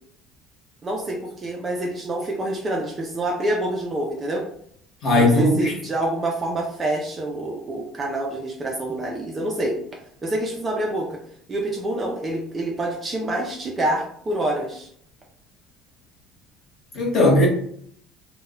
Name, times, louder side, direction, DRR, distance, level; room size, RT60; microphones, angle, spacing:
voice 1, 0.8-4.4 5.1-9.8 10.2-11.2 11.5-14.9, right 1 dB, 20° right, -1 dB, 0.3 m, -27 dB
voice 2, 5.0-5.7 16.9-17.5, left 1 dB, 30° left, -2 dB, 0.9 m, -17 dB
2.2 x 2.0 x 3.5 m, 0.64 s
cardioid pair, 180°, 0 cm